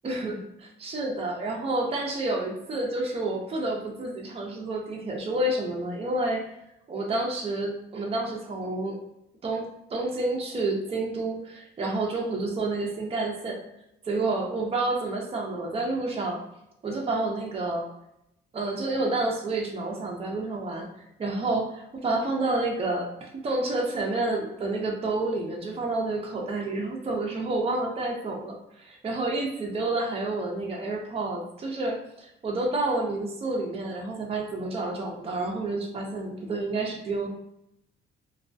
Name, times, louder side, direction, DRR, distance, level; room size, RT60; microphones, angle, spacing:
voice 1, 0.0-6.4 6.9-9.0 9.4-13.6 14.0-16.4 16.8-17.8 18.5-20.9 21.2-37.3, right 2 dB, 30° right, -1 dB, 0.5 m, -29 dB
2.3 x 2.2 x 2.5 m, 0.81 s
cardioid pair, 90°, 20 cm